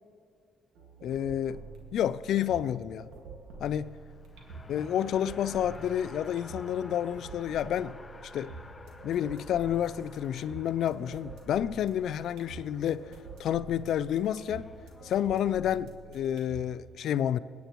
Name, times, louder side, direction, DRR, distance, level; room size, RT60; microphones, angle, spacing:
sound 1, 0.7-16.7, right 4 dB, 90° right, 1.8 m, -47 dB
voice 1, 1.0-1.6 1.9-3.1 3.6-3.9 4.7-8.0 8.3-8.5 9.0-13.1 13.4-14.7 15.0-17.4, left 10 dB, 75° left, 0.3 m, -29 dB
Race car auto racing, 3.8-15.1, left 2 dB, 20° left, 0.7 m, -51 dB
22.0 x 9.3 x 3.0 m
cardioid pair, 90°, 0 cm